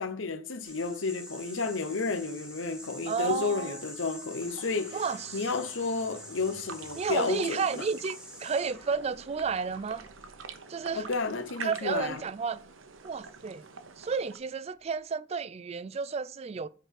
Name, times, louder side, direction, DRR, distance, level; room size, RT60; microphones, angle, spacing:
voice 1, 0.0-5.0 5.3-7.8 10.9-12.2, left 4 dB, 75° left, 1.0 m, -32 dB
sound 1, 0.6-11.2 11.9-13.3, left 1 dB, 5° right, 1.4 m, -47 dB
voice 2, 3.1-3.8 4.9-5.5 7.0-10.0 10.7-11.1 11.6-12.6 13.0-13.7 14.0-16.7, right 5 dB, 30° right, 0.3 m, -32 dB
sound 2, 4.4-14.4, right 5 dB, 80° right, 0.9 m, -47 dB
7.7 x 4.0 x 6.2 m
head